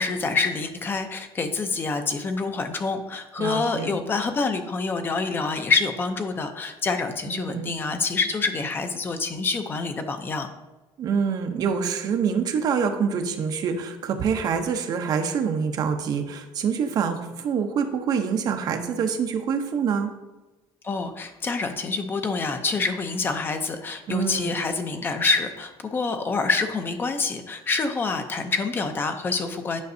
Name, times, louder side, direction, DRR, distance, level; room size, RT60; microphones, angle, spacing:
voice 1, 0.0-10.5 20.8-29.8, left 4 dB, 20° left, 7 dB, 0.5 m, -26 dB
voice 2, 3.4-4.0 7.3-7.8 11.0-20.1 24.1-24.6, right 6 dB, 40° right, 6 dB, 0.7 m, -26 dB
9.4 x 5.2 x 2.6 m, 1.1 s
cardioid pair, 170°, 10 cm